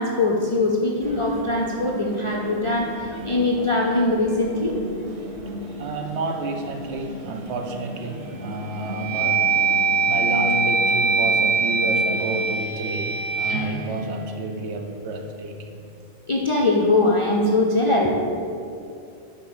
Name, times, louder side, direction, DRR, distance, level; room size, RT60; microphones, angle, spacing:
voice 1, 0.0-4.7 16.3-18.1, left 2 dB, 50° left, -2 dB, 0.4 m, -21 dB
sound 1, 1.0-12.4, equal, 35° right, 0.7 m, -36 dB
voice 2, 5.8-9.5 10.0-15.8, right 2 dB, 75° right, 4 dB, 0.9 m, -30 dB
sound 2, 7.8-8.2 8.7-14.9, right 4 dB, 55° right, 1.3 m, -23 dB
5.4 x 4.2 x 6.0 m, 2.6 s
omnidirectional pair, 1.2 m